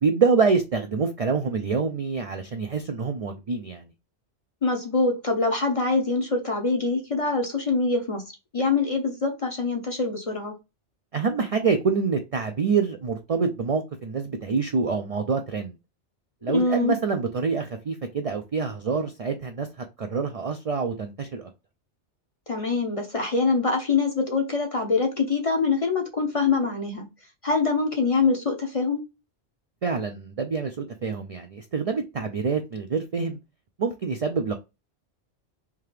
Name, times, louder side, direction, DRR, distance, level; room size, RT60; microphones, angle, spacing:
voice 1, 0.0-3.9 11.1-15.7 16.4-19.7 20.0-21.5 29.8-33.4 33.8-34.5, right 5 dB, 60° right, 0.3 m, -26 dB
voice 2, 4.6-8.2 8.5-10.5 16.5-16.9 22.5-27.1 27.4-29.0, left 4 dB, 40° left, 0.6 m, -24 dB
3.5 x 2.8 x 3.2 m
omnidirectional pair, 1.2 m